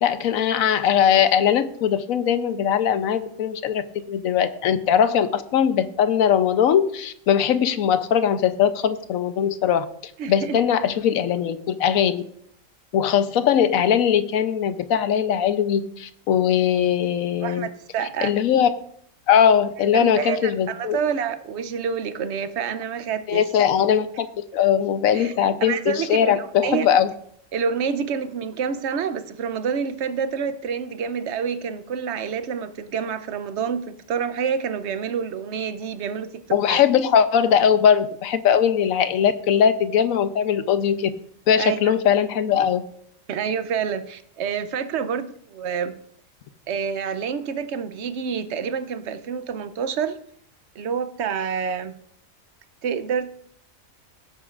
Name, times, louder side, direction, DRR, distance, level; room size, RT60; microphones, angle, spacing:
voice 1, 0.0-9.9 10.3-12.2 12.9-17.7 18.2-18.7 19.3-21.0 23.3-27.1 36.5-41.1 41.5-42.8, left 8 dB, 80° left, 12 dB, 1.1 m, -20 dB
voice 2, 10.2-10.6 17.4-18.3 19.9-23.4 25.1-26.9 27.5-36.8 41.6-41.9 43.3-45.9 46.7-50.2 50.8-51.9 52.8-53.3, right 6 dB, 60° right, 12 dB, 0.9 m, -28 dB
16.5 x 8.4 x 2.5 m, 0.66 s
omnidirectional pair, 1.4 m